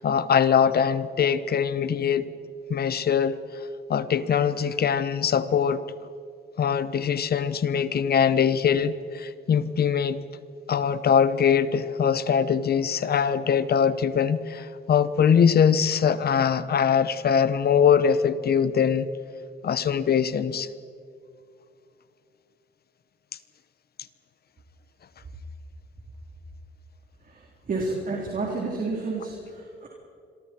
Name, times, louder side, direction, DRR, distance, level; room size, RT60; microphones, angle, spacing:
voice 1, 0.0-2.3 2.7-3.4 3.9-5.8 6.6-10.2 10.7-19.1 19.6-20.7, left 7 dB, 50° left, 14 dB, 1.1 m, -22 dB
voice 2, 27.7-29.3 29.8-29.9, right 3 dB, 45° right, -1 dB, 3.9 m, -29 dB
26.5 x 23.0 x 4.6 m, 2.4 s
cardioid pair, 90°, 20 cm